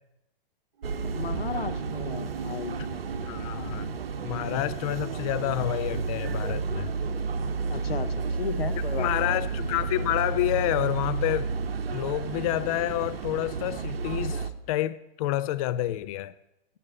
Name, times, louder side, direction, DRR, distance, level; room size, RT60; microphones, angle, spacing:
sound 1, 0.8-7.3 7.6-7.7, right 4 dB, 55° right, 1.2 m, -44 dB
sound 2, 0.8-14.5, right 5 dB, 80° right, 0.8 m, -31 dB
voice 1, 1.0-3.2 7.7-9.4, left 7 dB, 80° left, 11 dB, 0.9 m, -35 dB
voice 2, 3.3-3.9 4.2-6.9 8.9-11.5 11.9-16.3, left 15 dB, 40° left, 15 dB, 0.4 m, -29 dB
9.9 x 8.0 x 5.5 m, 0.87 s
hypercardioid pair, 115°, 29 cm